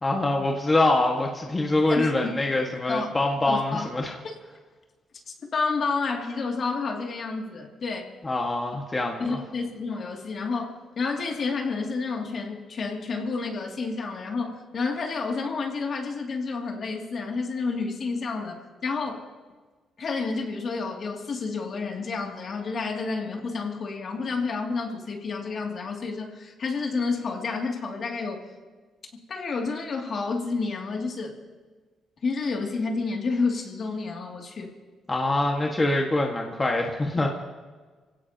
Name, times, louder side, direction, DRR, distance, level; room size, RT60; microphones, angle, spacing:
voice 1, 0.0-4.1 8.2-9.4 35.1-37.3, left 2 dB, 25° left, 0 dB, 1.7 m, -24 dB
voice 2, 1.9-2.3 2.9-3.2 3.5-3.9 4.2-4.3 5.5-8.1 9.2-19.2 20.0-28.5 29.3-31.4 32.2-34.7, left 4 dB, 50° left, 1 dB, 2.6 m, -30 dB
26.0 x 17.0 x 2.9 m, 1.4 s
cardioid pair, 90°, 0 cm